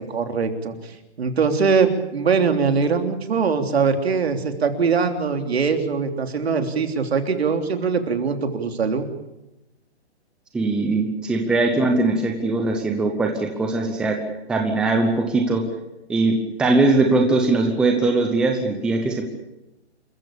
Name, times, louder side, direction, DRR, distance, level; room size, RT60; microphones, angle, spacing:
voice 1, 0.1-0.9 1.2-9.1, right 5 dB, 70° right, 6 dB, 3.4 m, -22 dB
voice 2, 10.5-14.2 14.5-15.6 16.1-19.3, right 3 dB, 5° right, 3 dB, 0.8 m, -20 dB
28.0 x 15.0 x 8.7 m, 0.95 s
hypercardioid pair, 170°, 33 cm